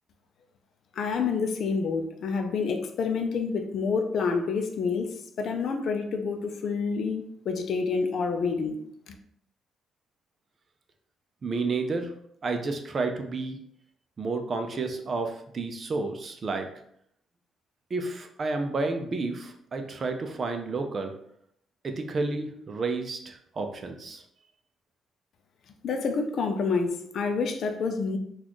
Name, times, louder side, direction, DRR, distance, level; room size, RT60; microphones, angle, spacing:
voice 1, 1.0-9.1 25.8-28.2, left 5 dB, 65° left, 6 dB, 0.5 m, -28 dB
voice 2, 11.4-12.1 12.4-13.6 14.2-16.7 17.9-21.1 21.8-24.2, right 3 dB, 45° right, 5 dB, 0.5 m, -31 dB
4.0 x 2.4 x 3.0 m, 0.70 s
cardioid pair, 90°, 0 cm